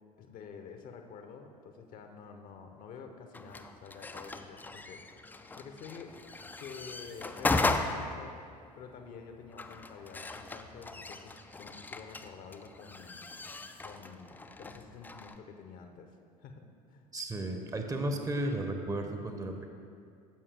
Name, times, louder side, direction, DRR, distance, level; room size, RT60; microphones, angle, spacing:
voice 1, 0.2-6.1 6.6-8.4 8.7-13.2 13.8-17.1, left 5 dB, 45° left, 5 dB, 0.8 m, -49 dB
sound 1, 3.3-15.4, left 3 dB, 10° left, 0.4 m, -37 dB
voice 2, 17.1-19.7, right 1 dB, 15° right, 5 dB, 0.8 m, -34 dB
10.0 x 7.0 x 3.4 m, 2.3 s
figure-of-eight pair, 65°, 20 cm